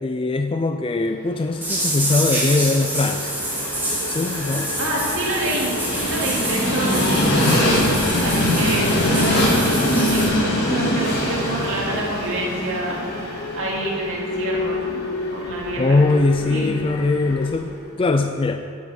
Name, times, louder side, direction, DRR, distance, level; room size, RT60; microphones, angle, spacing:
voice 1, 0.0-3.3 4.1-4.7 15.8-18.6, left 3 dB, 25° left, 7 dB, 0.4 m, -21 dB
Train, 1.5-17.6, left 1 dB, 50° left, 3.3 m, -24 dB
sound 1, 1.6-10.3, right 1 dB, 10° right, 3.4 m, -27 dB
sound 2, 3.1-17.5, left 3 dB, 85° left, 0.8 m, -34 dB
voice 2, 4.8-15.0 15.3-16.0 16.5-16.7, right 1 dB, 65° right, -3 dB, 2.7 m, -27 dB
15.0 x 9.6 x 4.4 m, 2.5 s
head